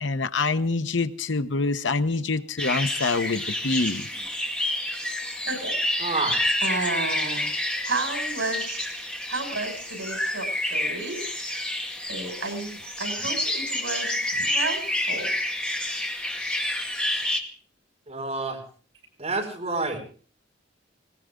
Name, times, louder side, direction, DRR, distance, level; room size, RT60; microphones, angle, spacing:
voice 1, 0.0-4.1, left 3 dB, 75° left, 10 dB, 1.0 m, -26 dB
sound 1, 2.6-17.4, left 1 dB, 5° left, 2.2 m, -29 dB
voice 2, 5.5-5.8 6.6-7.5 7.8-11.3 12.1-15.3, right 3 dB, 85° right, 5 dB, 6.4 m, -32 dB
voice 3, 6.0-6.4 18.1-18.6 19.2-20.0, right 3 dB, 35° right, 0 dB, 5.5 m, -28 dB
19.5 x 18.5 x 3.8 m, 0.43 s
head